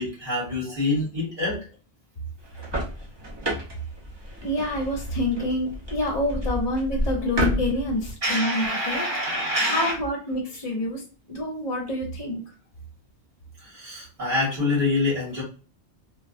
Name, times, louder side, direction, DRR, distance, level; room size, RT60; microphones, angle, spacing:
voice 1, 0.0-1.6 8.2-10.0 10.8-10.9 13.6-15.4, left 2 dB, 50° right, -4 dB, 1.7 m, -26 dB
sound 1, 2.4-8.1, equal, 30° right, 0.6 m, -31 dB
voice 2, 4.4-9.1 9.7-11.0 11.3-12.4, left 1 dB, 40° left, -1 dB, 0.7 m, -27 dB
3.2 x 2.1 x 2.5 m, 0.37 s
omnidirectional pair, 1.1 m